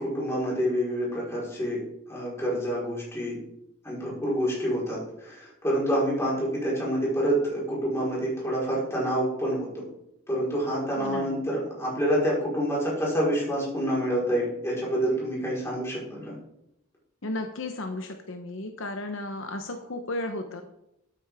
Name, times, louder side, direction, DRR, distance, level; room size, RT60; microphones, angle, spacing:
voice 1, 0.0-1.8 2.1-3.4 3.8-5.0 5.2-9.8 10.3-16.3, equal, 10° left, -5 dB, 4.5 m, -27 dB
voice 2, 11.0-11.4 17.2-20.6, left 2 dB, 65° left, 5 dB, 0.9 m, -34 dB
12.5 x 9.0 x 3.6 m, 0.82 s
head